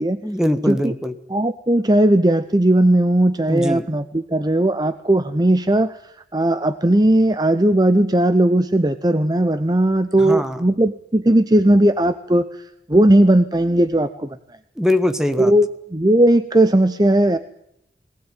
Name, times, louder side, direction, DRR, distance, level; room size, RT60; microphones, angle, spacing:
voice 1, 0.2-1.2 3.5-3.8 10.2-10.6 14.8-15.5, left 1 dB, 5° right, 8 dB, 1.6 m, -21 dB
voice 2, 1.3-6.0 6.3-12.4 12.9-14.3 15.4-17.4, right 1 dB, 25° right, 10 dB, 0.8 m, -17 dB
22.0 x 19.0 x 9.1 m, 0.77 s
head